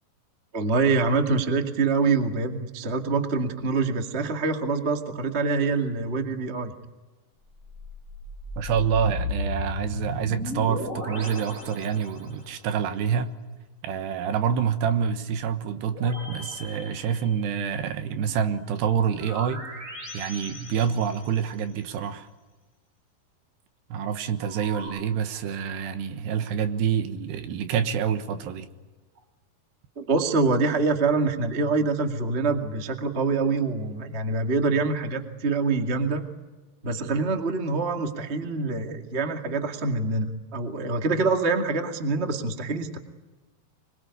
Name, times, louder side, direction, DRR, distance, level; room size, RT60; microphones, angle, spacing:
voice 1, 0.5-6.7 29.9-36.2 36.8-43.0, right 4 dB, 40° right, 0.8 m, -25 dB
sound 1, 7.5-12.6 15.9-17.7 19.1-21.7 24.4-24.9, left 1 dB, 15° right, 7.6 m, -35 dB
voice 2, 8.6-13.3 13.8-19.7 20.1-22.3 23.9-28.7, right 7 dB, 70° right, 3.3 m, -27 dB
26.0 x 23.0 x 9.6 m
omnidirectional pair, 5.2 m